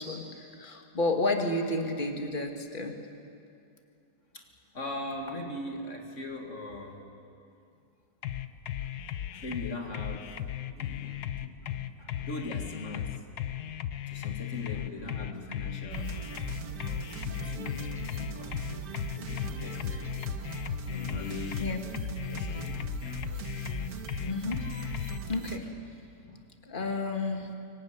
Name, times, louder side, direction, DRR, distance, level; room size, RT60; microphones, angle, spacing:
voice 1, 0.0-3.0 11.1-11.2 11.6-11.8 12.2-12.3 14.7-14.9 16.6-16.8 17.3-17.4 18.0-18.1 21.6-21.9 24.3-24.6 25.3-26.0 26.3-27.5, left 2 dB, 30° left, 3 dB, 2.1 m, -32 dB
voice 2, 4.7-7.0 9.3-10.4 10.7-11.2 11.4-11.5 12.0-13.2 14.1-16.5 16.8-18.9 19.1-20.3 20.8-21.7 22.2-23.5, left 2 dB, 45° left, 2 dB, 2.5 m, -40 dB
sound 1, 8.2-25.2, left 11 dB, 65° left, 1.3 m, -36 dB
sound 2, 15.9-25.6, right 5 dB, 55° right, 1.8 m, -40 dB
25.0 x 23.0 x 9.6 m, 2.5 s
omnidirectional pair, 1.9 m